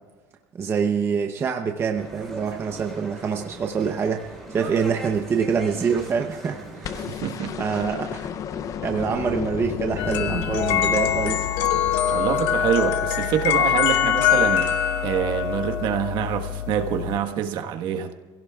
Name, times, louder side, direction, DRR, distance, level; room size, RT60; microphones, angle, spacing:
voice 1, 0.6-7.0 7.6-8.3 8.8-11.4, right 6 dB, 25° right, 4 dB, 0.8 m, -25 dB
sound 1, 1.9-7.1, right 2 dB, ahead, 4.6 m, -39 dB
sound 2, 6.8-13.0 14.5-14.6, left 8 dB, 35° left, 0.6 m, -33 dB
voice 2, 7.0-7.6 12.1-18.1, right 9 dB, 55° right, 5 dB, 1.4 m, -26 dB
sound 3, 10.0-17.2, left 9 dB, 80° left, 1.2 m, -23 dB
28.0 x 16.5 x 2.4 m, 1.4 s
cardioid pair, 155°, 9 cm